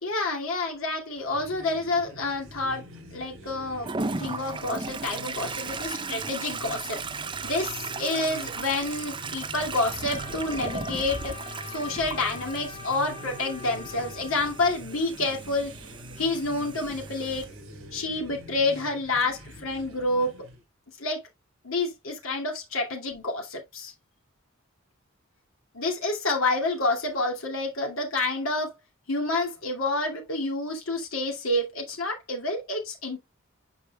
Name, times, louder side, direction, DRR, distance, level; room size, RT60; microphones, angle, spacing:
voice 1, 0.0-7.0 7.4-11.3 11.6-15.7 16.2-17.5 17.9-20.3 21.0-21.2 21.6-23.9 25.7-28.7 29.1-33.2, left 2 dB, 80° left, 2.5 m, -28 dB
sound 1, 1.1-20.6, equal, 70° right, 4.1 m, -45 dB
Toilet flush, 3.8-17.4, right 4 dB, 25° right, 0.6 m, -36 dB
Trumpet, 10.0-14.7, left 5 dB, 30° left, 2.3 m, -43 dB
8.5 x 5.6 x 2.3 m
head